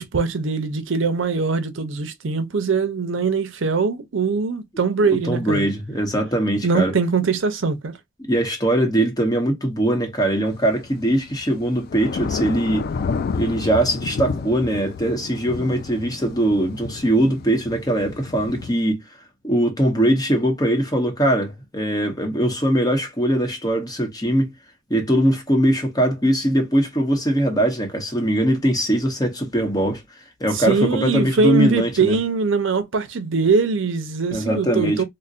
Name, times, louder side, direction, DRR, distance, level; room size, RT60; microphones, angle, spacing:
voice 1, 0.0-5.7 6.6-8.0 30.5-35.0, right 4 dB, 70° right, 0.6 m, -22 dB
voice 2, 5.3-6.9 8.3-12.9 13.3-19.0 19.4-24.5 24.9-30.0 30.4-32.2 34.3-35.0, right 1 dB, 20° left, 0.9 m, -21 dB
Thunder / Rain, 10.5-18.7, left 5 dB, 50° left, 0.3 m, -31 dB
3.9 x 2.1 x 2.4 m
head